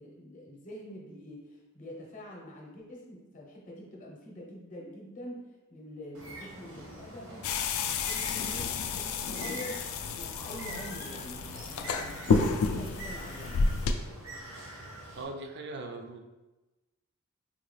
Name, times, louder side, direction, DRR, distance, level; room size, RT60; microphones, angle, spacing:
voice 1, 0.0-7.5 7.9-13.7, equal, 40° left, -1 dB, 0.8 m, -46 dB
Bird, 6.1-15.2, right 2 dB, 80° right, 0.9 m, -45 dB
sound 1, 7.4-13.9, left 4 dB, 80° left, 0.3 m, -30 dB
voice 2, 15.2-16.2, right 2 dB, 50° right, 4 dB, 0.4 m, -40 dB
3.8 x 2.3 x 3.2 m, 1.1 s
head